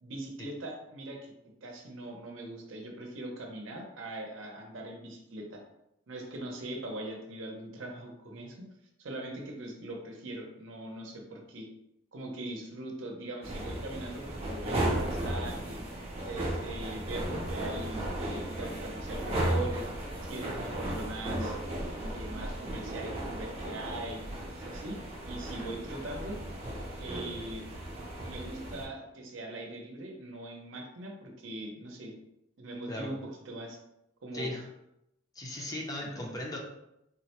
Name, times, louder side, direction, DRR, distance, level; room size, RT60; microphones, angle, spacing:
voice 1, 0.0-1.3 1.6-5.6 6.1-8.7 9.0-11.7 12.1-15.8 16.2-19.9 20.2-21.6 22.1-25.0 25.3-27.6 28.2-32.1 32.6-33.2 33.5-33.8 34.2-34.6 35.6-35.7 36.0-36.1, right 1 dB, 75° right, 1 dB, 0.6 m, -41 dB
sound 1, 13.4-28.9, right 1 dB, 30° right, 0.6 m, -35 dB
voice 2, 35.3-36.6, left 1 dB, 20° left, -1 dB, 0.5 m, -37 dB
3.8 x 2.1 x 2.8 m, 0.83 s
head